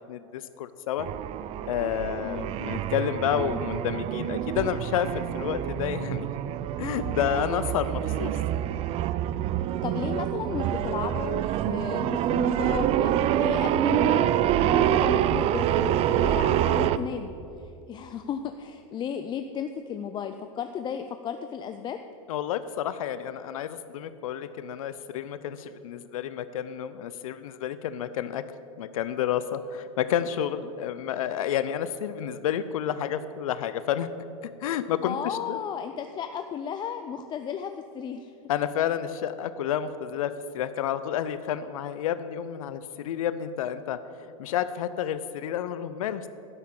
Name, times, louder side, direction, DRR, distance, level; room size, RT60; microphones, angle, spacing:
voice 1, 0.1-1.1 1.7-6.3 6.8-8.4 22.3-28.4 28.8-34.1 34.4-35.6 38.5-44.0 44.4-46.3, left 10 dB, 80° left, 13 dB, 0.6 m, -30 dB
sound 1, 1.0-17.0, right 11 dB, 35° right, 0.4 m, -26 dB
voice 2, 7.0-7.4 9.8-17.3 17.6-22.0 35.0-38.3, left 7 dB, 25° left, 8 dB, 0.5 m, -34 dB
12.0 x 5.8 x 8.6 m, 2.6 s
hypercardioid pair, 115°, 18 cm